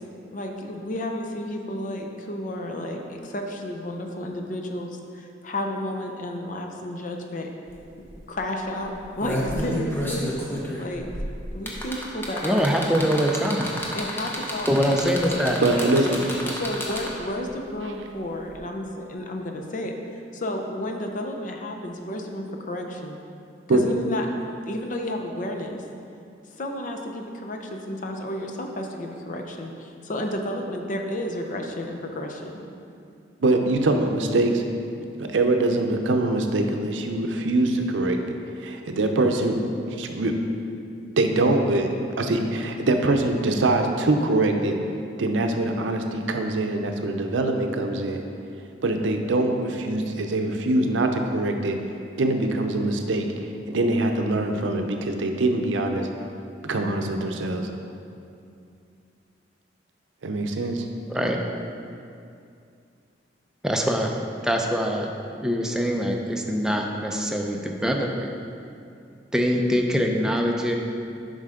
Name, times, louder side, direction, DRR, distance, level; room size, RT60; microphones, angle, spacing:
voice 1, 0.3-7.5 8.0-10.3 10.8-11.1 11.5-12.8 13.9-16.2 16.5-19.9 20.3-23.2 23.7-25.8 26.6-32.6, left 1 dB, 45° left, 2 dB, 0.6 m, -32 dB
sound 1, 7.7-7.8 8.1-8.3 8.9-17.3 18.5-18.6, equal, 10° left, 0.8 m, -31 dB
voice 2, 12.4-13.7 14.7-15.6 61.1-61.4 63.6-64.2 64.4-65.1 65.4-68.3 69.3-70.8, equal, 5° right, 1 dB, 0.5 m, -23 dB
voice 3, 15.6-16.3 23.7-23.8 33.4-34.6 35.2-38.2 38.6-39.6 39.9-40.4 41.2-44.8 45.2-48.2 48.8-51.8 52.2-53.3 53.7-56.1 56.6-57.7 60.2-60.9, right 2 dB, 80° right, 4 dB, 0.6 m, -23 dB
7.6 x 5.4 x 3.7 m, 2.5 s
head